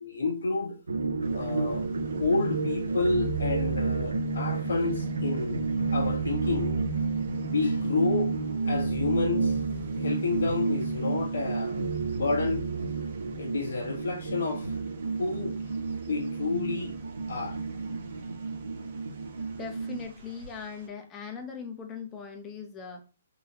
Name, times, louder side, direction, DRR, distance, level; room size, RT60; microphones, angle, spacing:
voice 1, 0.0-0.8 1.3-1.9 2.2-5.6 5.9-6.8 7.5-8.3 8.7-9.5 10.0-11.8 12.1-12.6 13.4-14.8 15.2-15.6 16.1-16.9 17.3-17.6, left 3 dB, 75° left, 1.3 m, -29 dB
sound 1, 0.9-20.0, right 4 dB, 90° right, 0.7 m, -30 dB
sound 2, 1.2-20.9, right 3 dB, 45° right, 1.2 m, -48 dB
voice 2, 19.6-23.0, left 5 dB, 20° left, 0.7 m, -40 dB
3.9 x 2.8 x 3.0 m
hypercardioid pair, 145°, 0 cm